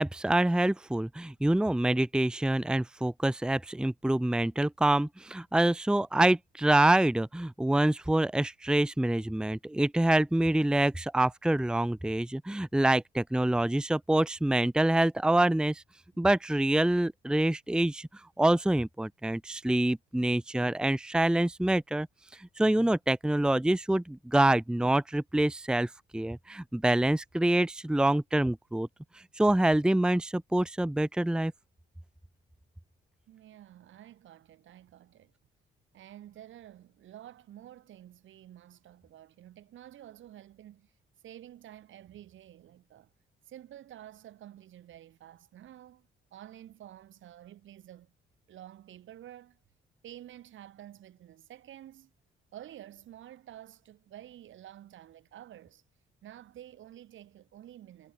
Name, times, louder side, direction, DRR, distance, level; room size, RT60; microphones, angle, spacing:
voice 1, 0.0-15.8 16.2-18.1 18.4-22.1 22.3-28.9 29.1-31.5, right 1 dB, 5° right, 0.8 m, -26 dB
voice 2, 33.3-35.3 35.9-40.9 41.2-43.1 43.5-48.1 48.5-49.6 50.0-52.1 52.5-55.8 56.2-58.1, right 12 dB, 75° right, 5.9 m, -50 dB
cardioid pair, 90°, 20 cm